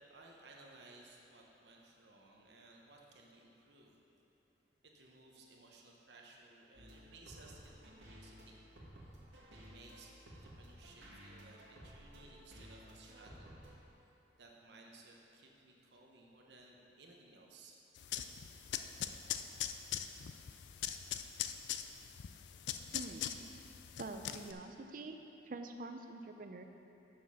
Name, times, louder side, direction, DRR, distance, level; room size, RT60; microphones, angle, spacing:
voice 1, 0.0-4.0 4.8-8.6 9.0-13.6 14.4-17.8, right 2 dB, 70° right, -1 dB, 0.9 m, -59 dB
sound 1, 6.7-13.7, equal, 85° right, 1.8 m, -55 dB
sound 2, 18.0-24.5, left 10 dB, 75° left, 0.4 m, -42 dB
voice 2, 22.9-23.4 24.0-25.2 25.5-26.6, right 2 dB, 50° right, 5 dB, 0.5 m, -46 dB
7.3 x 6.1 x 5.8 m, 2.9 s
head